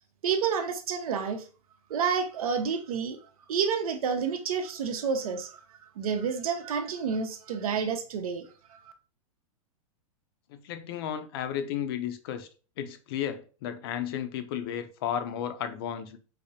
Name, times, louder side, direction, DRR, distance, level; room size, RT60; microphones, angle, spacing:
voice 1, 0.2-1.5 1.9-3.2 3.5-5.6 6.0-8.9, right 6 dB, 80° right, 0.7 m, -29 dB
voice 2, 10.5-12.5 12.8-16.2, left 9 dB, 40° left, 0.5 m, -33 dB
5.0 x 2.0 x 2.7 m
supercardioid pair, 160°, 18 cm